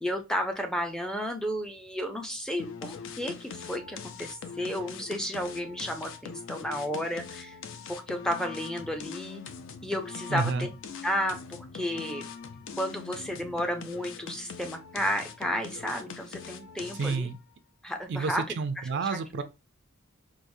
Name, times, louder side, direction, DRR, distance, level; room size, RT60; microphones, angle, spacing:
voice 1, 0.0-7.6 7.9-9.4 9.8-10.7 11.0-12.2 12.8-17.3 17.8-18.6 19.0-19.4, equal, 5° left, 0.5 m, -32 dB
sound 1, 2.6-17.4, left 6 dB, 60° left, 0.4 m, -42 dB
voice 2, 10.3-10.7 17.0-17.4 18.1-19.4, right 4 dB, 55° right, 0.4 m, -30 dB
4.7 x 2.0 x 2.6 m
head